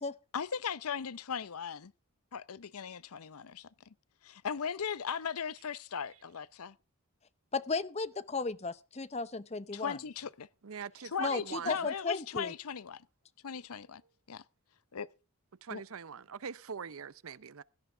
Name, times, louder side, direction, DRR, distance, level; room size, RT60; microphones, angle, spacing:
voice 1, 0.3-1.9 2.3-3.9 4.2-6.8 9.7-10.5 11.0-13.1 13.4-14.0 14.3-14.4 14.9-15.1 15.7-15.8, left 7 dB, 80° left, 0.7 m, -38 dB
voice 2, 7.5-10.0 11.2-12.5, left 4 dB, 30° left, 0.6 m, -35 dB
voice 3, 10.6-11.9 15.6-17.6, right 6 dB, 70° right, 0.6 m, -42 dB
17.0 x 11.5 x 3.4 m
head